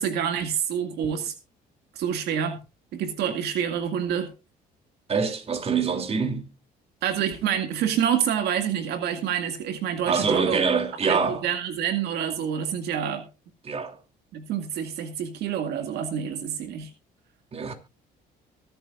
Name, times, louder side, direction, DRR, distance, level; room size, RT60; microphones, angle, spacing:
voice 1, 0.0-1.3 1.9-2.6 2.9-4.3 7.0-10.6 11.0-13.3 14.3-16.9, right 8 dB, 75° right, 2.1 m, -27 dB
voice 2, 5.1-6.5 10.0-11.5 13.6-14.0 17.5-17.7, right 5 dB, 35° right, 3.0 m, -25 dB
24.0 x 9.1 x 2.5 m
cardioid pair, 110°, 17 cm